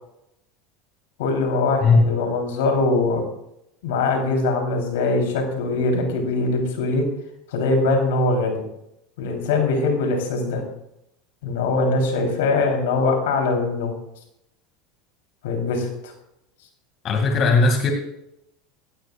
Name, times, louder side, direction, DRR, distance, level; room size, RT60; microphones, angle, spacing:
voice 1, 1.2-3.2 3.8-7.1 7.5-8.6 9.2-10.6 11.4-13.9 15.4-16.1, left 3 dB, 75° left, 3 dB, 3.7 m, -22 dB
voice 2, 17.0-17.9, left 3 dB, 45° left, 3 dB, 2.4 m, -17 dB
16.5 x 16.5 x 2.5 m, 0.82 s
hypercardioid pair, 90°, 0 cm